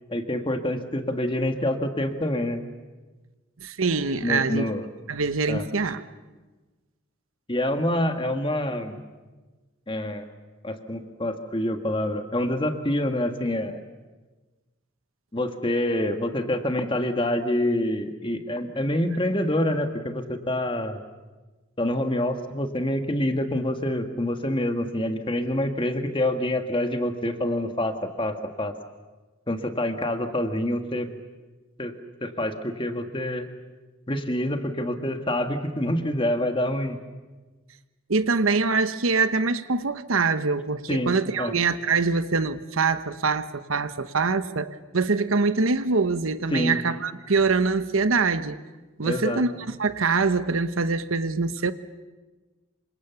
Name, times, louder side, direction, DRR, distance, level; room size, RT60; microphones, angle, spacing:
voice 1, 0.1-2.6 4.2-4.8 5.5-5.6 7.5-9.0 9.9-10.2 10.6-13.8 15.3-21.0 21.8-28.7 29.5-31.1 31.8-31.9 32.2-33.5 34.1-37.0 40.9-41.5 46.5-46.8 49.0-49.4, left 1 dB, 25° left, 7 dB, 1.6 m, -26 dB
voice 2, 3.6-4.7 5.1-6.0 38.1-48.6 49.0-51.7, right 4 dB, 80° right, 12 dB, 1.1 m, -24 dB
28.0 x 25.5 x 7.0 m, 1.2 s
head